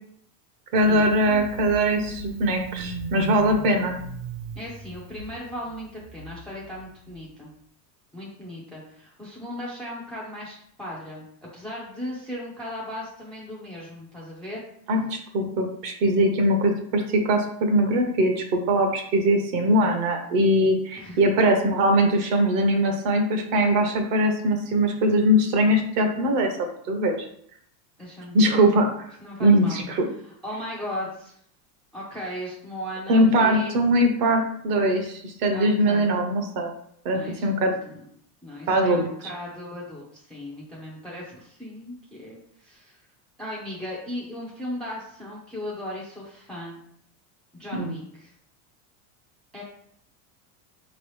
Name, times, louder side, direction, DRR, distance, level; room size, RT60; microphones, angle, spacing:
voice 1, 0.7-4.0 14.9-27.1 28.3-29.1 29.4-30.1 33.1-36.7 37.0-37.7 38.7-39.1 47.7-47.9, right 1 dB, 45° right, 4 dB, 0.9 m, -21 dB
Engine starting, 0.7-7.2, right 4 dB, 80° right, 0.9 m, -38 dB
voice 2, 4.6-7.5 8.1-11.3 11.5-14.6 21.0-21.2 28.0-28.6 29.2-29.8 30.2-31.3 31.9-33.8 35.5-36.1 37.1-37.5 37.8-38.1 38.4-43.0 43.4-46.8 47.5-48.3 49.5-49.6, left 1 dB, ahead, -5 dB, 0.4 m, -37 dB
4.6 x 3.1 x 3.1 m, 0.66 s
supercardioid pair, 150°, 49 cm